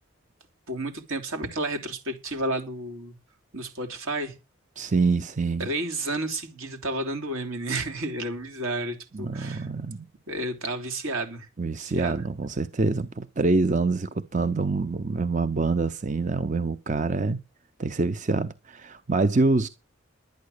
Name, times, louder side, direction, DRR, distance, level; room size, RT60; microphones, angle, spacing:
voice 1, 0.7-3.1 3.5-4.4 5.6-9.7 10.3-11.5 11.8-12.2, right 2 dB, 80° right, 3.3 m, -31 dB
voice 2, 4.8-5.7 9.1-10.1 11.6-17.4 17.8-19.7, right 3 dB, 35° right, 0.6 m, -25 dB
11.5 x 9.3 x 6.5 m
head